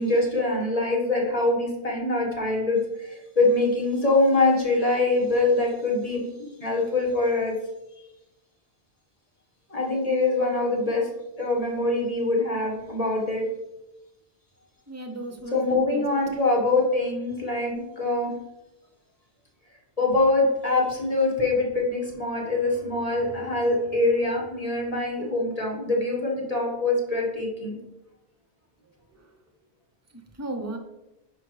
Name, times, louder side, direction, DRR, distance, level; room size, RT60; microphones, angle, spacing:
voice 1, 0.0-7.5 9.7-11.1 11.4-13.5 15.5-18.3 20.0-27.8, left 2 dB, 35° left, -2 dB, 1.5 m, -24 dB
voice 2, 14.9-16.0 29.2-29.3 30.1-30.8, right 2 dB, 15° right, 4 dB, 0.7 m, -36 dB
9.9 x 4.6 x 3.2 m, 0.97 s
omnidirectional pair, 1.1 m